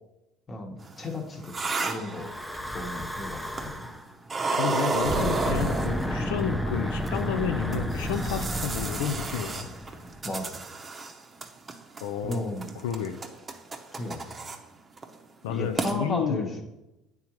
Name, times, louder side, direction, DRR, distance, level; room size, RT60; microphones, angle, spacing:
voice 1, 0.5-1.6 1.8-2.3 2.7-3.9 10.2-10.6 12.2-12.7 13.9-14.4 15.5-16.6, left 1 dB, 30° left, 3 dB, 1.1 m, -34 dB
sound 1, 0.9-2.8 3.5-3.9 4.3-6.4 7.0-7.2 7.7-11.1 11.4-12.0 12.3-14.6 15.0-15.1 15.5-15.6 15.8-15.9, right 4 dB, 25° right, 0.7 m, -32 dB
Breathing / Wind, 2.1-4.0 4.9-10.3, left 1 dB, 5° left, 0.5 m, -32 dB
voice 2, 4.6-9.7 12.0-12.5 12.8-13.2 15.4-16.5, left 7 dB, 85° left, 6 dB, 0.4 m, -31 dB
9.0 x 3.7 x 3.0 m, 0.97 s
supercardioid pair, 85°, 0 cm